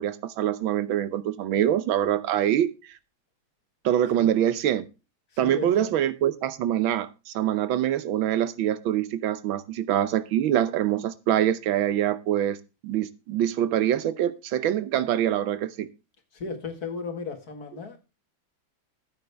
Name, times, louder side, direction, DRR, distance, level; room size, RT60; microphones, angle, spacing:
voice 1, 0.0-2.7 3.8-4.9 5.4-12.6 12.8-15.9, right 11 dB, 85° right, 1.6 m, -24 dB
voice 2, 5.3-5.9 16.3-18.0, left 4 dB, 50° left, 2.2 m, -35 dB
14.0 x 8.4 x 3.4 m
omnidirectional pair, 2.1 m